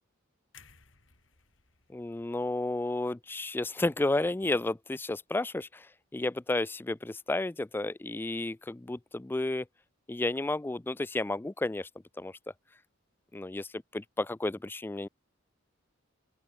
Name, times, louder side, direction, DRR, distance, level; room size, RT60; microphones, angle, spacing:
sound 1, 0.5-4.6 4.9-5.1, left 6 dB, 70° left, 3.6 m, -62 dB
voice 1, 1.9-5.9 6.1-9.7 10.1-11.9 12.2-12.3 13.3-13.7 13.9-15.1, left 2 dB, 10° left, 0.3 m, -32 dB
open air
head